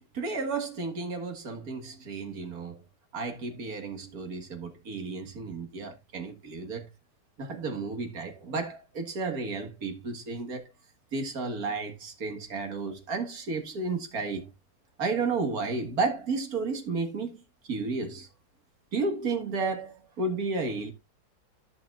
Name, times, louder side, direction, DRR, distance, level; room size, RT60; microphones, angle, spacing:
voice 1, 0.0-2.8 3.1-6.9 7.4-10.6 11.1-14.5 15.0-18.3 18.9-20.9, right 4 dB, 65° right, 2.1 m, -32 dB
14.5 x 6.0 x 2.4 m
omnidirectional pair, 1.7 m